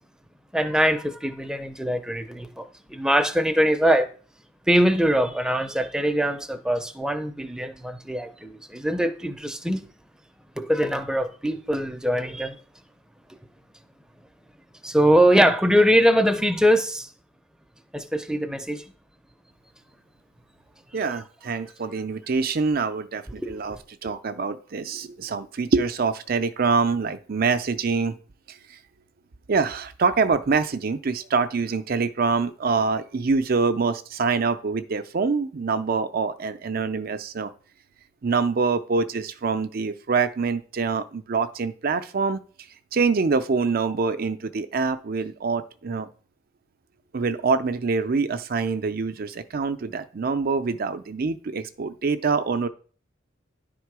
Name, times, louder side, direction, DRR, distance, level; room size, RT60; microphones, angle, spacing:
voice 1, 0.5-4.1 4.7-9.9 10.6-12.6 14.8-17.1 17.9-18.8 23.4-23.6, equal, 5° right, 0.5 m, -22 dB
voice 2, 20.9-23.8 24.0-28.1 28.5-28.8 29.5-37.5 38.2-42.4 42.9-46.1 47.1-52.7, right 4 dB, 50° right, 0.5 m, -25 dB
10.0 x 3.7 x 4.7 m
head